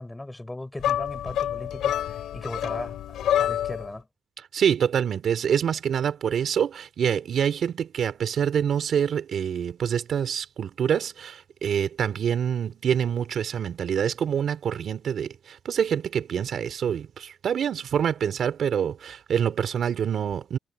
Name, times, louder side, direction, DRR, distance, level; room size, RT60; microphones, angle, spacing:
voice 1, 0.0-4.1, left 1 dB, 10° left, 6.2 m, -37 dB
sound 1, 0.8-3.9, left 11 dB, 75° left, 3.9 m, -27 dB
voice 2, 4.5-20.6, right 8 dB, 60° right, 3.5 m, -26 dB
cardioid pair, 90°, 0 cm